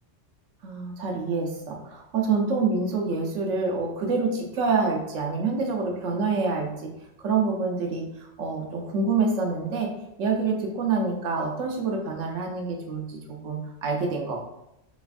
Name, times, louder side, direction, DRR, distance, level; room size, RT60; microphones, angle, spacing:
voice 1, 0.6-6.9 7.2-9.9 10.2-14.4, right 4 dB, 85° right, 1 dB, 1.0 m, -27 dB
3.3 x 3.0 x 2.4 m, 0.86 s
omnidirectional pair, 1.3 m